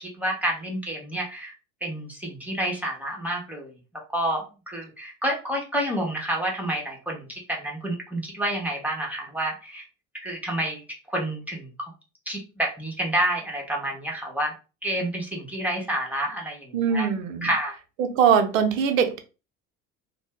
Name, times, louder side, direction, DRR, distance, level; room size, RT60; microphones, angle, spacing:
voice 1, 0.0-1.5 1.8-3.7 4.1-9.8 10.1-10.8 11.1-11.9 12.3-14.5 14.8-17.1 17.4-17.8, right 1 dB, 5° right, 1.2 m, -29 dB
voice 2, 16.7-17.5 18.0-19.2, right 7 dB, 80° right, 0.7 m, -22 dB
2.6 x 2.3 x 3.5 m
hypercardioid pair, 70°, 39 cm